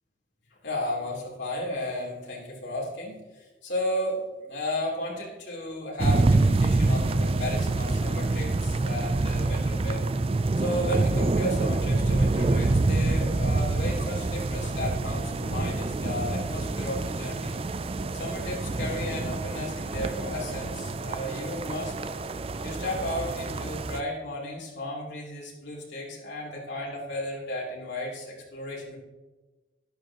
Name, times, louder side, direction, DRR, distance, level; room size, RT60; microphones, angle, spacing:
voice 1, 0.6-3.2 3.6-10.0 10.6-17.5 18.1-21.9 22.6-29.0, left 1 dB, 75° left, -3 dB, 3.3 m, -34 dB
sound 1, 6.0-24.0, right 2 dB, 30° right, 0.4 m, -26 dB
12.0 x 11.5 x 3.0 m, 1.2 s
head